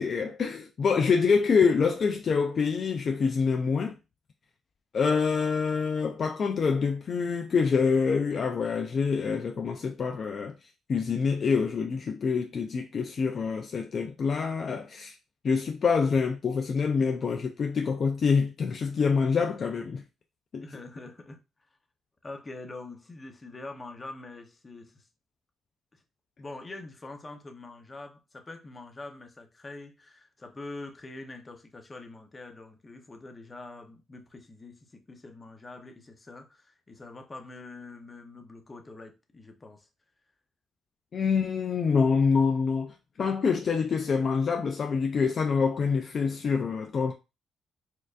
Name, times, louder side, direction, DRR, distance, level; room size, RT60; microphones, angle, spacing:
voice 1, 0.0-4.0 4.9-10.5 10.9-15.1 15.4-20.0 20.5-20.6 41.1-47.1, left 5 dB, 50° left, 0.4 m, -26 dB
voice 2, 20.6-21.4 22.2-25.1 26.4-39.9, left 2 dB, 25° left, 0.7 m, -44 dB
4.3 x 2.6 x 2.4 m
cardioid pair, 90°, 0 cm